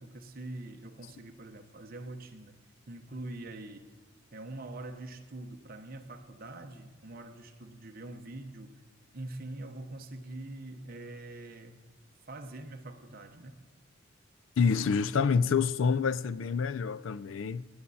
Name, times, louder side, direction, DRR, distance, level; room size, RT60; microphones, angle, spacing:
voice 1, 0.0-2.5 2.9-3.9 4.3-8.8 9.1-11.8 12.3-13.6, right 2 dB, 45° right, 0.9 m, -44 dB
voice 2, 14.6-17.6, left 5 dB, 75° left, 0.4 m, -27 dB
17.0 x 8.7 x 4.1 m
head